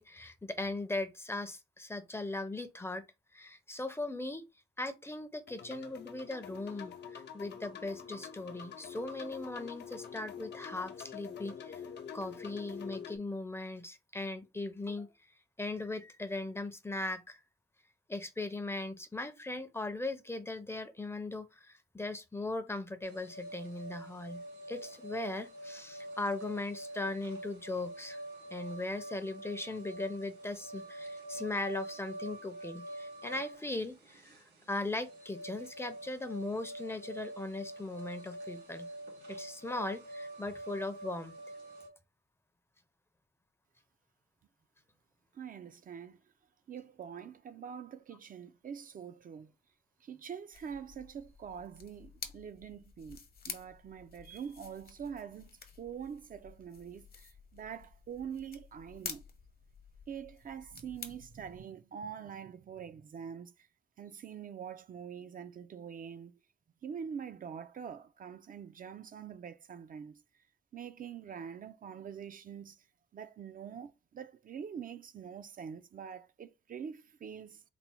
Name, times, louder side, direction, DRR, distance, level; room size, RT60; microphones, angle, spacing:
voice 1, 0.0-3.1 3.3-4.4 4.8-11.8 12.1-15.1 15.6-17.4 18.1-24.4 24.7-28.2 28.5-34.3 34.7-38.9 39.3-41.3, left 2 dB, 15° left, 0.5 m, -39 dB
sound 1, 5.5-13.2, left 7 dB, 80° left, 0.6 m, -46 dB
sound 2, 23.0-41.9, right 1 dB, 85° right, 2.3 m, -46 dB
voice 2, 45.3-46.2 46.7-49.5 50.0-53.2 53.5-55.5 55.8-59.2 60.1-63.7 64.0-66.4 66.8-70.2 70.7-72.8 73.1-77.6, right 7 dB, 55° right, 0.4 m, -45 dB
sound 3, 50.5-61.6, left 5 dB, 60° left, 0.9 m, -50 dB
4.1 x 2.0 x 4.3 m
wide cardioid pair, 110°, 17 cm